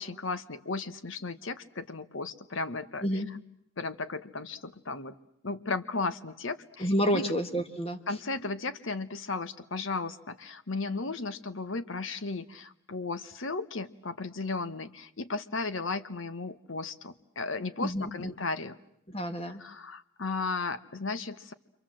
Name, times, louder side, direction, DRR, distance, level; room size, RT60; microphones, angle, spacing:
voice 1, 0.0-3.4 3.8-5.2 5.4-7.3 8.1-18.8 19.5-21.5, left 3 dB, 65° left, 11 dB, 1.1 m, -35 dB
voice 2, 6.8-8.0 17.8-18.3 19.1-19.6, equal, 25° left, 7 dB, 1.6 m, -29 dB
29.0 x 25.5 x 7.6 m, 0.76 s
head